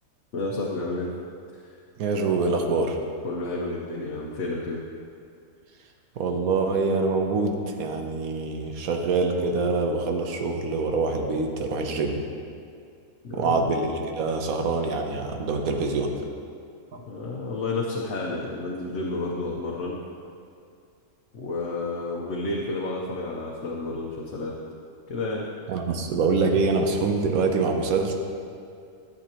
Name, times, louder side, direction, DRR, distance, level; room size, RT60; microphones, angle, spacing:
voice 1, 0.3-1.1 3.2-4.8 13.2-13.7 17.1-20.0 21.3-24.5 25.1-25.5, left 2 dB, 60° left, -3 dB, 1.1 m, -30 dB
voice 2, 2.0-3.0 6.2-12.2 13.3-16.1 25.7-28.1, right 3 dB, 85° right, 4 dB, 1.3 m, -25 dB
12.5 x 7.6 x 2.9 m, 2.4 s
omnidirectional pair, 1.5 m